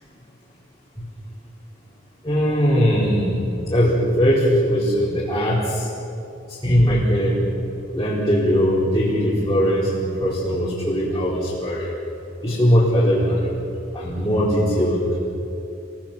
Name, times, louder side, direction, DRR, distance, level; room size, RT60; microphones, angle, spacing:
voice 1, 2.2-3.4 3.7-5.9 6.6-7.4 7.9-11.9 12.4-13.5 13.9-15.2, equal, 20° left, -10 dB, 4.1 m, -20 dB
27.0 x 18.0 x 6.8 m, 2.8 s
head